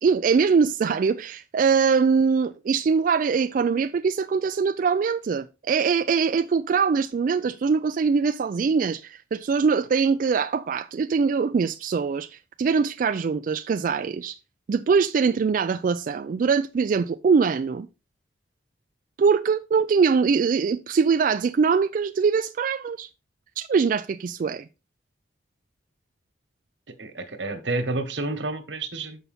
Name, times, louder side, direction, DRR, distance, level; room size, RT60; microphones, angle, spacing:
voice 1, 0.0-14.4 14.7-17.9 19.2-23.1 23.6-24.6, right 5 dB, 50° right, 0.3 m, -22 dB
voice 2, 27.0-29.2, right 2 dB, 85° right, 1.3 m, -29 dB
6.9 x 5.6 x 4.2 m
head